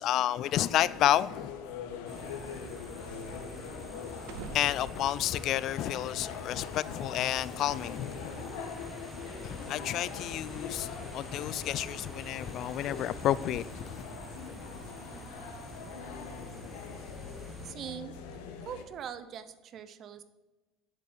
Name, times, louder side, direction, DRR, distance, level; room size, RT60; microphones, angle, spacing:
voice 1, 0.0-1.5 4.5-8.3 9.4-14.0, left 12 dB, 50° left, 0.4 m, -30 dB
sound 1, 0.6-18.8, left 6 dB, 85° left, 1.5 m, -43 dB
sound 2, 1.3-7.3, right 4 dB, 85° right, 1.8 m, -52 dB
sound 3, 2.1-17.7, right 1 dB, 10° right, 1.1 m, -47 dB
voice 2, 17.6-18.1 18.6-20.2, right 8 dB, 40° right, 0.7 m, -42 dB
8.7 x 7.5 x 7.8 m
cardioid pair, 145°, 0 cm